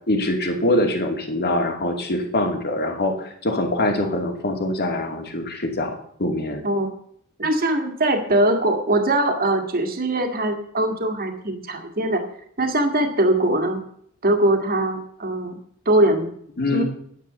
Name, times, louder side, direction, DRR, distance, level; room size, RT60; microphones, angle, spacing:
voice 1, 0.1-5.9 6.2-6.6 16.6-16.8, left 1 dB, 50° left, 4 dB, 2.5 m, -23 dB
voice 2, 7.4-12.2 12.6-13.8 14.2-15.6 15.9-16.3 16.7-16.8, right 1 dB, 45° right, 5 dB, 2.0 m, -21 dB
10.0 x 9.9 x 6.8 m, 0.65 s
head